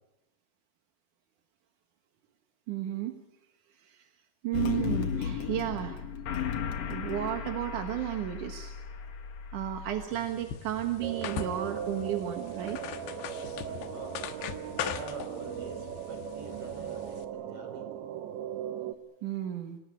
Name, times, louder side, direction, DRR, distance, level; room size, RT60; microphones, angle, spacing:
voice 1, 2.7-3.2 3.8-4.1 4.4-6.0 6.9-8.7 9.5-12.8 19.2-19.8, right 12 dB, 60° right, 5 dB, 2.2 m, -33 dB
sound 1, 4.5-10.1, left 7 dB, 55° left, 2.0 m, -35 dB
sound 2, 10.1-17.3, left 10 dB, 75° left, 3.4 m, -41 dB
sound 3, 11.0-18.9, right 9 dB, 85° right, 3.6 m, -38 dB
voice 2, 13.6-14.3 14.8-17.9, right 3 dB, 30° right, 4 dB, 5.5 m, -45 dB
26.5 x 19.0 x 8.2 m, 0.94 s
omnidirectional pair, 5.1 m